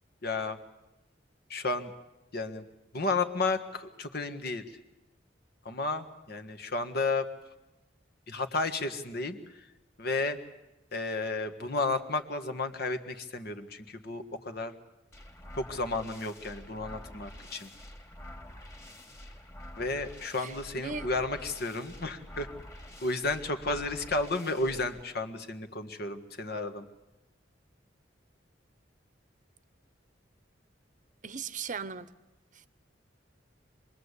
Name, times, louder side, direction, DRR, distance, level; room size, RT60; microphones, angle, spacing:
voice 1, 0.2-0.6 1.5-1.9 2.3-2.7 2.9-4.8 5.7-7.3 8.3-9.7 10.0-10.4 10.9-14.7 15.5-17.7 19.8-22.5 23.0-26.9, left 3 dB, 60° left, 8 dB, 1.8 m, -32 dB
sound 1, 15.1-25.0, left 1 dB, 15° left, 2.4 m, -47 dB
voice 2, 20.4-21.1 31.2-32.1 32.5-32.7, right 5 dB, 45° right, 15 dB, 0.9 m, -38 dB
27.0 x 21.0 x 8.3 m, 0.97 s
head